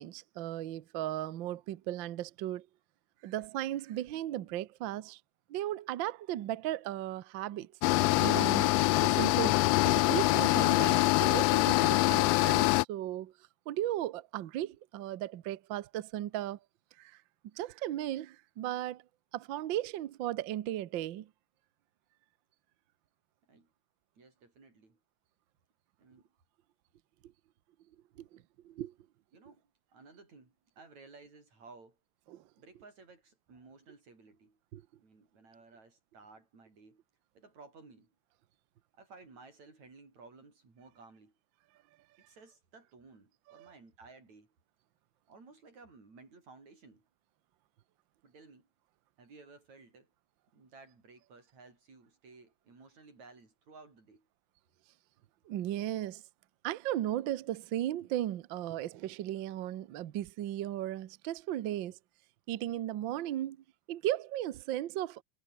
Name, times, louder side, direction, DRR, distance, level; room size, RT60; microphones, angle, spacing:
voice 1, 0.0-2.7 3.2-5.2 5.5-7.7 8.0-8.7 9.0-9.6 9.8-13.3 13.7-16.6 17.0-17.2 17.5-19.0 19.3-21.3 28.2-28.9 32.3-32.4 34.7-34.8 43.5-43.7 55.5-56.2 56.6-62.0 62.5-63.6 63.9-65.2, right 13 dB, 85° right, 1.0 m, -36 dB
sound 1, 7.8-12.8, left 20 dB, 85° left, 1.4 m, -25 dB
voice 2, 24.2-25.0 26.0-26.3 29.3-32.0 32.6-34.6 35.0-37.0 37.3-38.2 39.0-41.4 42.2-44.5 45.3-47.1 48.2-48.7 49.2-50.1 50.5-54.3, right 3 dB, 65° right, 7.8 m, -56 dB
omnidirectional pair, 3.4 m